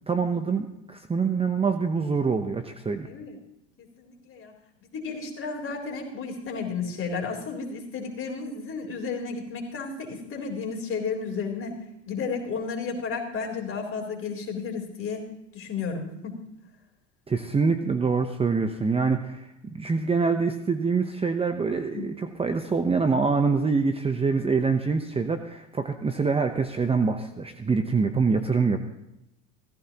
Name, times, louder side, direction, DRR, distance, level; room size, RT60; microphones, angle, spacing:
voice 1, 0.1-3.1 17.3-19.5 19.7-28.8, right 4 dB, 15° right, 7 dB, 0.9 m, -25 dB
voice 2, 3.0-3.4 3.8-4.5 4.8-11.8 12.1-15.2 15.5-16.4 21.9-22.1, left 5 dB, 35° left, 0 dB, 3.9 m, -33 dB
17.0 x 14.5 x 3.0 m, 0.86 s
hypercardioid pair, 95°, 38 cm